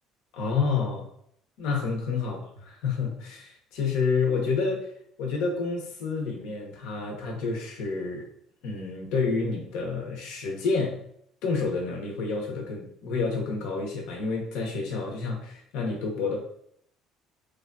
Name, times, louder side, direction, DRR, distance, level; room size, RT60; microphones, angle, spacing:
voice 1, 0.3-1.0 1.6-4.9 5.2-8.2 8.6-10.9 11.4-16.4, left 4 dB, 75° left, 0 dB, 0.7 m, -29 dB
3.2 x 2.3 x 2.6 m, 0.69 s
supercardioid pair, 80°, 0 cm